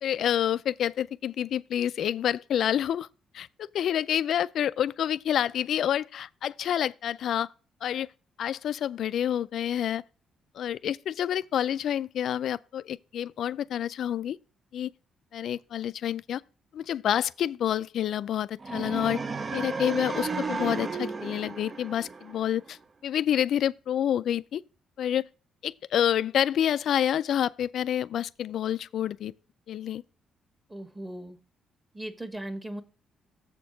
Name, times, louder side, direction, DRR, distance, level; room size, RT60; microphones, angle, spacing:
voice 1, 0.0-3.1 3.3-7.5 7.8-8.1 8.4-10.0 10.5-14.4 14.7-14.9 15.3-16.4 16.7-19.2 19.5-24.6 25.0-25.2 25.6-29.3 29.7-30.0, left 10 dB, 70° left, 0.3 m, -28 dB
sound 1, 18.6-22.7, right 4 dB, 35° right, 0.6 m, -33 dB
voice 2, 30.7-31.4 31.9-32.8, right 1 dB, 15° right, 1.4 m, -38 dB
7.3 x 4.4 x 6.7 m
cardioid pair, 90°, 0 cm